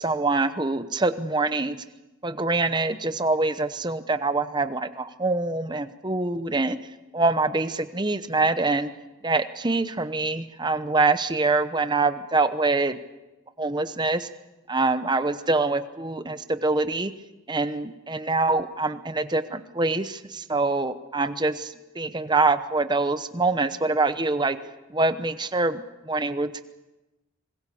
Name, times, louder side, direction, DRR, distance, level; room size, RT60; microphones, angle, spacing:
voice 1, 0.0-1.8 2.2-6.8 7.1-8.9 9.2-13.0 13.6-14.3 14.7-17.1 17.5-24.6 24.9-26.6, right 3 dB, 20° right, 11 dB, 0.9 m, -25 dB
25.0 x 21.0 x 7.1 m, 1.1 s
head